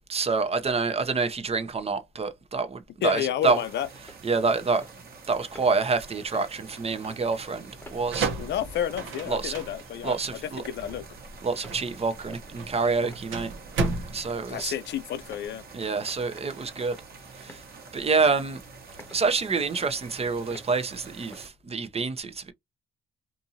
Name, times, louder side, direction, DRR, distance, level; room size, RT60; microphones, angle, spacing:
voice 1, 0.1-3.6 4.2-4.8 5.3-8.3 9.3-9.5 10.0-10.6 11.4-13.5 14.1-14.7 15.7-17.0 17.4-17.6 17.9-18.6 19.1-22.5, right 4 dB, 30° right, 0.7 m, -27 dB
voice 2, 3.0-3.9 8.4-11.1 14.5-15.6, left 10 dB, 60° left, 0.4 m, -30 dB
sound 1, 3.3-3.5 4.0-4.2 4.8-4.9 5.5-5.7 6.3-6.5 7.0-7.3 7.8-8.0 8.6-8.7 9.3-9.4 10.0-10.2 10.8-11.0 11.5-11.8 12.3-12.6 13.0-13.3 13.8-14.0 14.6-14.7 15.3-15.5 16.0-16.2 16.8-17.0 17.5-17.7 18.2-18.4 19.0-19.2 19.7-19.9 20.5-20.7 21.3-21.5, left 1 dB, 10° left, 1.0 m, -49 dB
sound 2, 3.4-21.5, right 4 dB, 50° right, 1.1 m, -47 dB
sound 3, 7.8-15.4, right 3 dB, 80° right, 0.9 m, -34 dB
2.6 x 2.6 x 2.7 m
cardioid pair, 90°, 20 cm